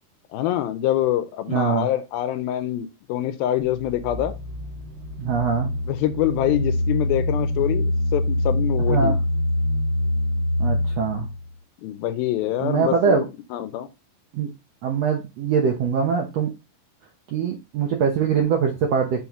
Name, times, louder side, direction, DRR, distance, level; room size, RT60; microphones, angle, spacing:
voice 1, 0.3-4.4 5.9-9.2 11.8-13.9, left 13 dB, 85° left, 2.5 m, -25 dB
voice 2, 1.5-1.9 5.2-5.7 8.9-9.2 10.6-11.3 12.6-13.2 14.3-14.5 14.8-16.5 17.3-19.2, right 6 dB, 75° right, 1.5 m, -22 dB
sound 1, 3.8-11.4, left 1 dB, 60° right, 2.6 m, -25 dB
7.2 x 4.2 x 3.0 m
omnidirectional pair, 4.3 m